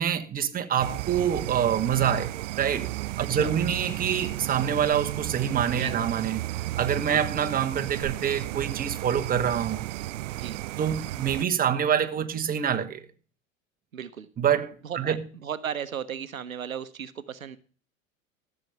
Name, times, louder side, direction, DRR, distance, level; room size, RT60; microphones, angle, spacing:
voice 1, 0.0-2.9 3.2-6.5 6.8-9.8 10.8-13.1 14.4-15.2, right 8 dB, 20° right, 1.1 m, -26 dB
sound 1, 0.8-11.4, right 17 dB, 65° right, 0.5 m, -33 dB
voice 2, 3.2-3.5 5.7-6.0 7.1-7.2 10.3-10.6 13.9-14.3 14.8-17.6, right 8 dB, 85° right, 0.9 m, -36 dB
14.5 x 6.9 x 6.7 m
figure-of-eight pair, 85°, 40 cm